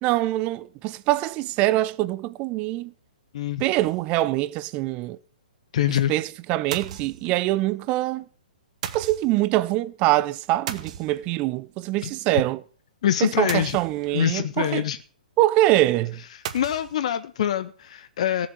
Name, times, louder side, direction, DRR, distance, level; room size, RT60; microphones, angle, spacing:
voice 1, 0.0-2.9 3.6-5.2 5.9-8.2 8.9-12.6 13.2-14.9 15.4-16.2, right 16 dB, 25° right, 0.6 m, -24 dB
sound 1, 3.8-4.3 4.7-4.8 5.0-5.1 6.7-7.6 8.8-9.5 10.7-11.5 13.5-14.3 16.4-17.0, right 9 dB, 45° right, 1.2 m, -36 dB
voice 2, 5.7-6.1 12.0-12.1 13.0-13.8 14.1-15.0 16.5-18.5, left 10 dB, 50° left, 0.7 m, -24 dB
15.5 x 7.3 x 7.2 m
figure-of-eight pair, 120°, 5 cm